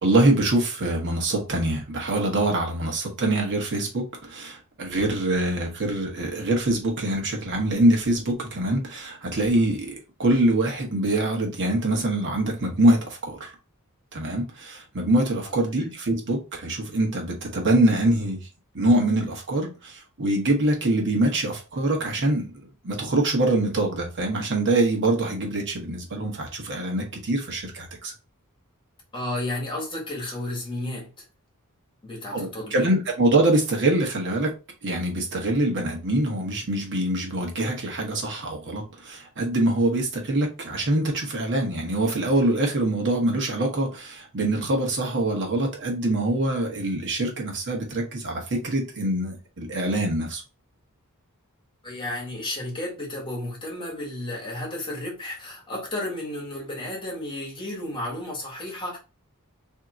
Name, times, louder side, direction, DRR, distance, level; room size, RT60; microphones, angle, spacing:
voice 1, 0.0-13.5 14.1-18.4 18.7-22.5 22.8-28.1 32.3-34.5 34.8-50.4, right 1 dB, 55° right, 1.1 m, -24 dB
voice 2, 15.4-15.9 29.1-31.2 32.0-32.9 51.8-59.0, left 1 dB, 20° left, 1.5 m, -33 dB
3.6 x 2.8 x 3.7 m
head